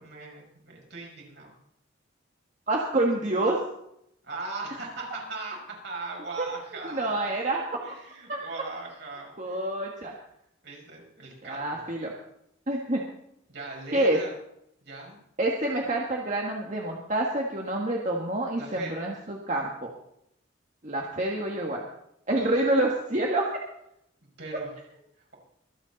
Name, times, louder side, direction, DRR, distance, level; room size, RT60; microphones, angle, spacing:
voice 1, 0.0-1.5 4.2-7.1 7.8-9.7 10.6-11.8 13.5-14.3 14.8-15.2 18.6-19.0 24.2-24.8 25.2-25.4, right 3 dB, 65° right, -1 dB, 5.6 m, -39 dB
voice 2, 2.7-3.6 6.4-6.5 6.8-7.6 8.3-8.4 9.4-10.1 11.4-12.1 12.7-13.0 13.9-14.2 15.4-19.9 20.8-21.8 22.3-23.6, right 1 dB, 40° right, -1 dB, 1.6 m, -27 dB
25.0 x 8.4 x 4.1 m, 0.76 s
head